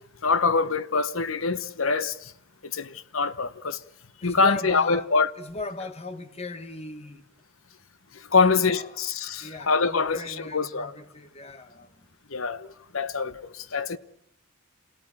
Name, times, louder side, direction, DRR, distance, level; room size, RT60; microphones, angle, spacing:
voice 1, 0.2-2.3 2.7-3.8 4.2-5.3 8.3-10.9 12.3-12.7 12.9-14.0, left 4 dB, 80° left, 1.0 m, -24 dB
voice 2, 4.2-7.3 8.4-9.1 9.4-12.1 13.2-13.3, left 2 dB, 30° left, 1.6 m, -38 dB
27.0 x 18.0 x 8.9 m
head